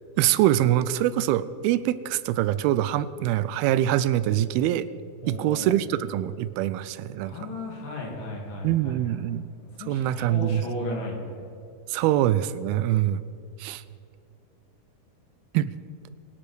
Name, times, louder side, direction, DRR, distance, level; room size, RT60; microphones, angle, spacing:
voice 1, 0.2-4.9 5.2-7.3 8.6-9.5 9.9-10.6 11.9-13.2 13.6-13.8 15.5-15.7, right 12 dB, 85° right, 16 dB, 2.4 m, -24 dB
voice 2, 5.2-5.7 7.2-9.1 9.8-11.2, left 1 dB, 65° left, -2 dB, 4.3 m, -35 dB
22.5 x 7.9 x 6.2 m, 2.5 s
omnidirectional pair, 4.4 m